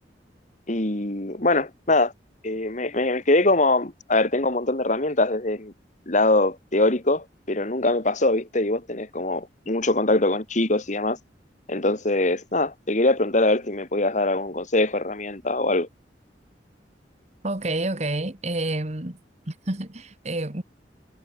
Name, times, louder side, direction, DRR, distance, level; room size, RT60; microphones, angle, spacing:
voice 1, 0.7-2.1 2.4-5.7 6.1-11.2 11.7-15.9, left 2 dB, 45° left, 2.4 m, -23 dB
voice 2, 17.4-19.2 19.5-20.6, right 2 dB, 40° right, 2.1 m, -29 dB
head